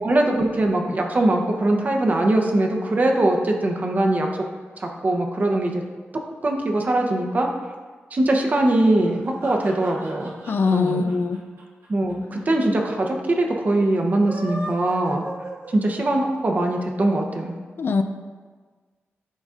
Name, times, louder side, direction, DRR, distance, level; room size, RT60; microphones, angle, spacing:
voice 1, 0.0-4.3 4.8-5.8 6.1-7.5 8.1-10.3 10.7-11.1 11.9-15.2 15.7-17.6, right 1 dB, 40° right, 1 dB, 0.8 m, -21 dB
sound 1, 9.1-12.4 12.7-12.8 13.0-13.1 14.1-16.2, right 1 dB, 85° right, 1.3 m, -37 dB
voice 2, 10.5-11.4 17.8-18.0, left 4 dB, 55° left, 8 dB, 0.4 m, -22 dB
11.0 x 4.0 x 2.5 m, 1.4 s
wide cardioid pair, 140°, 4 cm